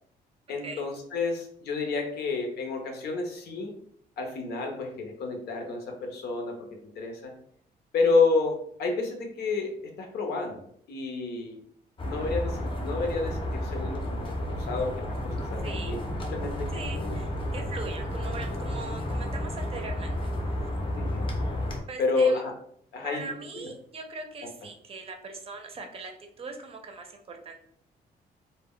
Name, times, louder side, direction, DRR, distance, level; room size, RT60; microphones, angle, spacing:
voice 1, 0.5-3.7 4.2-6.6 7.0-7.3 7.9-9.7 10.0-11.6 12.0-14.2 14.5-16.0 16.3-16.7 16.9-17.1 20.9-21.3 22.0-22.5 22.9-23.2 23.6-23.7, left 3 dB, 80° left, 3 dB, 0.7 m, -29 dB
sound 1, 12.0-21.8, left 1 dB, 30° left, 0.5 m, -32 dB
voice 2, 15.6-15.9 16.7-20.2 20.4-20.7 21.9-22.4 23.0-26.1 26.4-27.6, right 3 dB, 35° right, 3 dB, 0.5 m, -40 dB
2.2 x 2.1 x 3.6 m, 0.63 s
cardioid pair, 125°, 17 cm